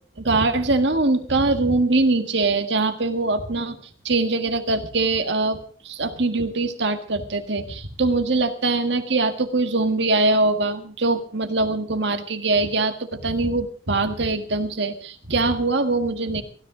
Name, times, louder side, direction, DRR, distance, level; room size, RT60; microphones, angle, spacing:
voice 1, 0.2-3.8 4.0-16.4, right 2 dB, 65° right, 8 dB, 1.8 m, -22 dB
16.5 x 13.0 x 5.0 m, 0.43 s
head